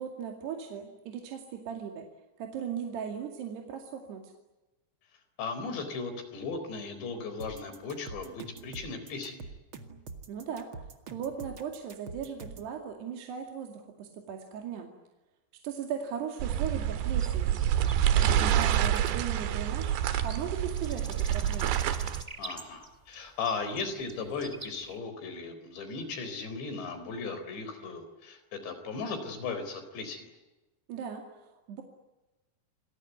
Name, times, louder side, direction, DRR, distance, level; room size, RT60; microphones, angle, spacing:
voice 1, 0.0-2.1 2.4-4.3 10.3-10.7 11.1-14.9 15.6-17.6 18.2-19.9 20.2-21.8 30.9-31.8, right 7 dB, 70° right, 3 dB, 4.3 m, -38 dB
voice 2, 5.4-9.4 18.2-18.5 22.4-30.3, left 4 dB, 80° left, 9 dB, 6.3 m, -37 dB
sound 1, 7.4-12.7, right 4 dB, 40° right, 1.9 m, -44 dB
sound 2, 16.4-22.2, right 11 dB, 85° right, 3.7 m, -27 dB
sound 3, 17.2-25.0, right 2 dB, 15° right, 1.3 m, -46 dB
28.0 x 20.5 x 9.4 m, 1.0 s
omnidirectional pair, 5.0 m